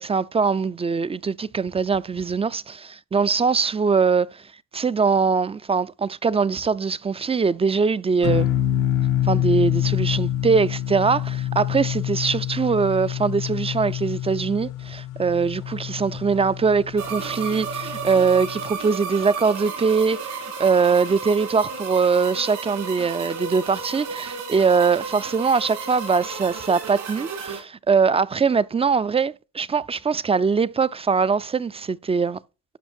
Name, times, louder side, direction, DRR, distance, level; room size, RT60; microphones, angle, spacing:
voice 1, 0.0-4.4 4.7-8.5 9.2-32.4, right 5 dB, 20° right, 0.4 m, -22 dB
sound 1, 8.2-18.8, left 12 dB, 80° left, 0.9 m, -27 dB
sound 2, 17.0-27.6, right 5 dB, 75° right, 4.1 m, -33 dB
12.0 x 5.5 x 4.4 m
cardioid pair, 100°, 31 cm